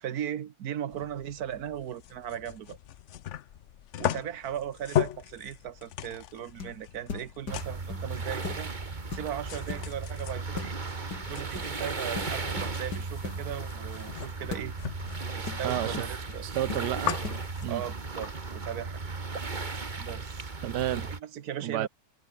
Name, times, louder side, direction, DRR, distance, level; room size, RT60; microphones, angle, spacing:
voice 1, 0.0-2.8 4.0-8.7 9.1-10.8 11.3-14.7 15.3-16.5 17.7-19.0 20.0-20.5 21.0-21.9, right 10 dB, 65° right, 1.5 m, -37 dB
sound 1, 0.9-18.3, left 11 dB, 60° left, 0.8 m, -39 dB
sound 2, 6.6-6.8 7.1-8.1 8.4-8.7 9.1-9.9 10.6-10.8 11.1-11.7 12.1-13.4 14.5-14.7 15.5-16.4 16.7-16.9 17.2-17.4, left 5 dB, 80° left, 3.1 m, -39 dB
sound 3, 7.5-21.2, right 3 dB, 30° right, 1.8 m, -36 dB
voice 2, 15.6-16.0 16.4-17.2 17.6-17.8 20.6-21.1 21.6-21.9, right 13 dB, 85° right, 1.4 m, -31 dB
omnidirectional pair, 1.8 m